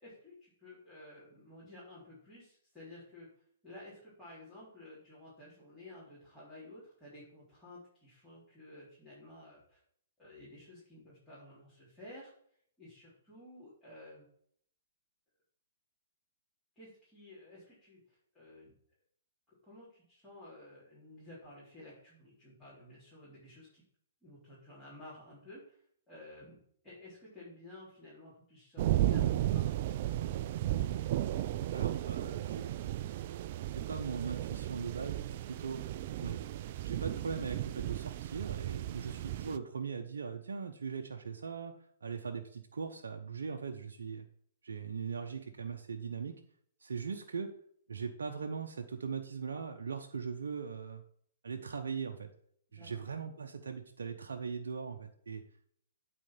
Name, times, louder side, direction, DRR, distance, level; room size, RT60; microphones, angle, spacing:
voice 1, 0.0-3.3 3.6-9.8 10.2-12.3 12.8-14.3 16.8-18.0 18.3-18.7 19.5-23.8 24.2-25.8 26.1-26.6 26.8-29.7 52.7-52.9, left 1 dB, 5° left, -12 dB, 3.8 m, -53 dB
sound 1, 28.8-39.6, right 13 dB, 45° right, 0.4 m, -34 dB
voice 2, 31.7-32.8 33.7-35.8 36.2-36.4 36.8-41.7 42.0-44.3 44.6-46.3 46.8-47.5 47.9-51.0 51.4-52.3 52.7-55.4, right 5 dB, 70° right, 4 dB, 0.7 m, -40 dB
9.0 x 4.3 x 5.7 m, 0.64 s
figure-of-eight pair, 120°, 0 cm